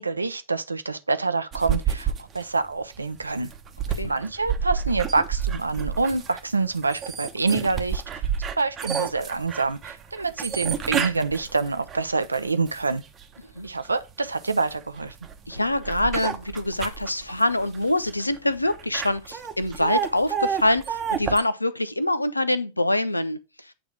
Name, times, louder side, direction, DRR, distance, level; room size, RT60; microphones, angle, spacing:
voice 1, 0.0-3.5 4.0-8.3 8.6-13.0 13.6-15.1, right 3 dB, 80° right, 0.6 m, -26 dB
sound 1, 1.5-13.2 13.8-21.4, right 7 dB, 25° right, 0.9 m, -30 dB
voice 2, 15.5-23.7, left 1 dB, 85° left, 0.5 m, -25 dB
8.6 x 2.9 x 4.8 m
figure-of-eight pair, 90°, 0 cm